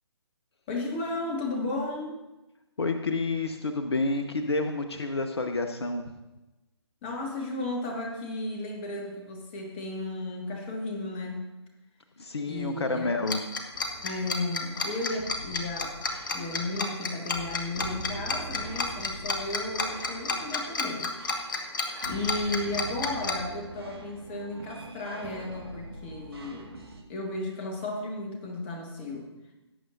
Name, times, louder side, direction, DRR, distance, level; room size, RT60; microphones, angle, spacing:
voice 1, 0.7-2.2 7.0-11.5 12.5-13.1 14.0-15.9 16.3-21.1 21.5-21.7 22.1-26.7 27.1-29.3, left 2 dB, 25° left, 1 dB, 1.8 m, -34 dB
voice 2, 2.8-6.0 12.2-13.4, left 3 dB, 65° left, 7 dB, 0.8 m, -29 dB
Tick-tock, 13.3-23.3, left 4 dB, 45° left, 1.2 m, -30 dB
sound 1, 13.7-27.0, right 2 dB, 60° right, 1.8 m, -44 dB
17.5 x 7.7 x 2.6 m, 1.0 s
figure-of-eight pair, 140°, 15 cm